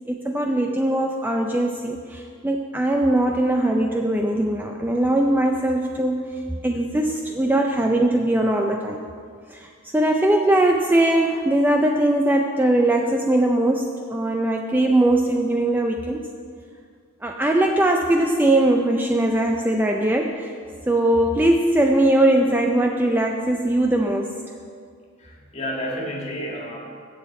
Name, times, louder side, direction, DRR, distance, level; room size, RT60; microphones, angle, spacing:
voice 1, 0.1-9.0 9.5-16.3 17.2-20.5 20.9-24.3, right 1 dB, 10° right, 2 dB, 0.4 m, -20 dB
voice 2, 25.2-26.8, equal, 30° left, -2 dB, 1.8 m, -30 dB
7.4 x 6.9 x 8.2 m, 2.1 s
head